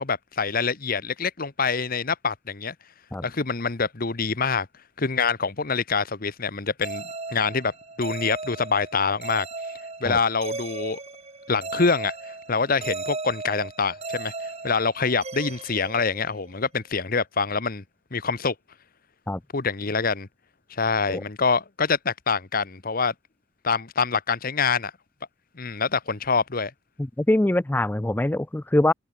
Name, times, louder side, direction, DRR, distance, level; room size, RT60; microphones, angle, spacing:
voice 1, 0.0-2.7 3.2-4.7 5.0-7.0 7.3-7.7 8.0-9.5 10.0-11.0 11.5-12.1 12.5-14.3 14.6-17.8 18.1-18.5 19.5-20.3 20.7-23.1 23.6-24.9 25.6-26.7, left 5 dB, 45° left, 1.0 m, -25 dB
sound 1, 6.8-16.6, right 3 dB, 30° right, 2.0 m, -36 dB
voice 2, 27.0-28.9, left 1 dB, 10° left, 0.3 m, -23 dB
head